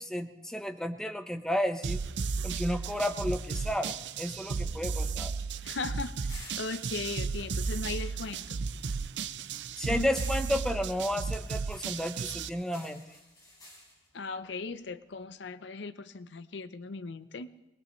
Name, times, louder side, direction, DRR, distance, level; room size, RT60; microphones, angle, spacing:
voice 1, 0.0-2.0 2.4-5.3 9.8-13.0, equal, 5° left, 6 dB, 0.8 m, -32 dB
sound 1, 1.8-12.5, right 5 dB, 75° right, 0.5 m, -34 dB
sound 2, 4.3-8.4 8.8-15.2, left 1 dB, 20° left, 4.7 m, -53 dB
voice 2, 5.6-8.6 9.9-10.1 14.1-17.5, left 3 dB, 80° left, 13 dB, 0.6 m, -38 dB
23.0 x 19.5 x 3.1 m, 1.0 s
head